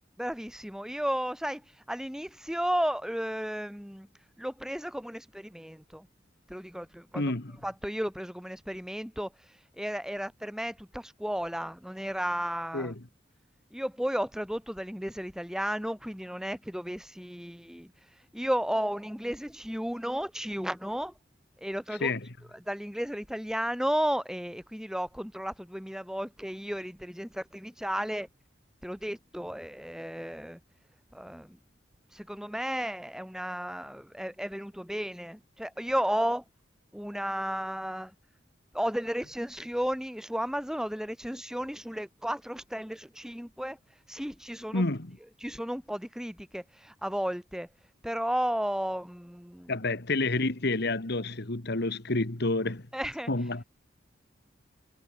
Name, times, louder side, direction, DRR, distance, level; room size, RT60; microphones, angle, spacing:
voice 1, 0.2-4.1 4.4-6.1 6.5-7.3 7.6-9.3 9.8-12.9 13.7-17.9 18.3-21.1 21.6-22.1 22.7-28.3 28.8-30.6 31.1-31.6 32.1-36.4 36.9-38.1 38.7-43.8 44.1-44.9 45.4-47.7 48.0-49.7 52.9-53.3, equal, 5° right, 5.3 m, -33 dB
voice 2, 7.2-7.5 12.7-13.0 22.0-22.3 44.7-45.2 49.7-52.8 53.3-53.6, left 2 dB, 60° left, 1.9 m, -29 dB
head